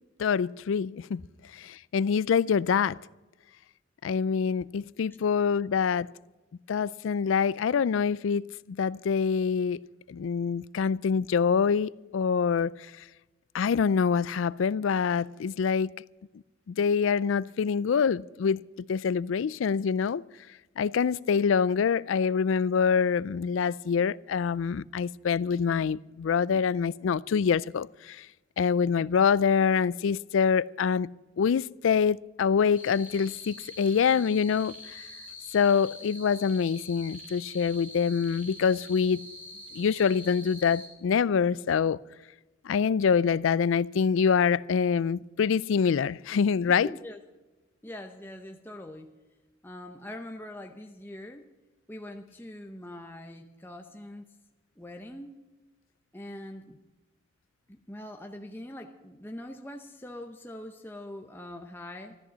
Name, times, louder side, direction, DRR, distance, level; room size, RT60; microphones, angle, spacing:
voice 1, 0.2-1.2 1.5-3.0 4.0-6.1 6.7-12.7 13.5-15.9 16.7-18.6 18.9-20.2 20.8-28.3 28.6-31.1 31.4-35.0 35.5-39.2 39.7-42.0 42.6-46.9, left 6 dB, 85° left, 0.4 m, -25 dB
sound 1, 32.7-40.9, left 2 dB, 10° right, 2.9 m, -45 dB
voice 2, 46.7-47.2 47.8-49.1 49.6-51.4 51.9-54.2 54.8-55.3 56.1-56.8 57.7-62.2, left 1 dB, 10° left, 0.7 m, -43 dB
14.0 x 12.5 x 6.3 m
head